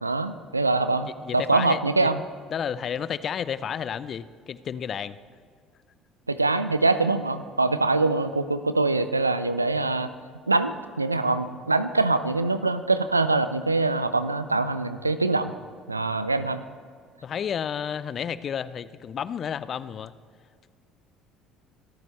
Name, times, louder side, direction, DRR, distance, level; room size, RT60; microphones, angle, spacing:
voice 1, 0.0-2.2 6.3-10.1 10.5-15.5 15.9-16.6, right 3 dB, 90° right, 12 dB, 0.5 m, -24 dB
voice 2, 1.0-2.1 2.5-5.2 17.2-20.1, left 8 dB, 45° left, 16 dB, 0.6 m, -31 dB
25.0 x 13.5 x 3.3 m, 2.1 s
figure-of-eight pair, 55°, 0 cm